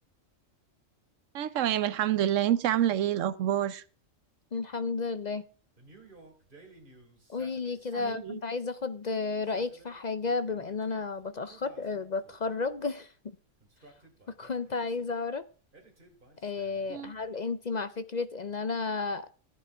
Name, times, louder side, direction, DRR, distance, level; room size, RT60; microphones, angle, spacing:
voice 1, 1.3-3.8 7.9-8.4 16.9-17.1, right 11 dB, 80° right, 1.1 m, -27 dB
voice 2, 4.5-5.4 7.3-13.1 14.3-15.4 16.4-19.3, left 4 dB, 45° left, 0.6 m, -32 dB
Male speech man speaking, 5.8-8.3 9.3-11.0 11.5-12.7 13.6-15.1 15.7-17.2, right 2 dB, 40° right, 2.8 m, -56 dB
15.0 x 9.2 x 3.5 m
omnidirectional pair, 1.3 m